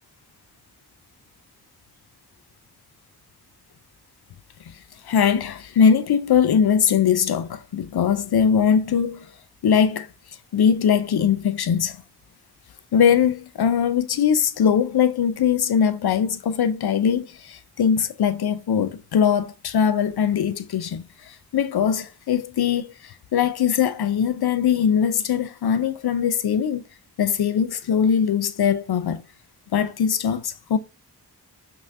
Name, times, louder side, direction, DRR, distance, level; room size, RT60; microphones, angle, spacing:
voice 1, 4.7-9.3 9.6-10.1 10.5-12.0 12.9-26.8 27.2-29.2 29.7-30.8, left 7 dB, 75° left, 0.5 m, -21 dB
5.4 x 2.6 x 2.6 m
cardioid pair, 45°, 39 cm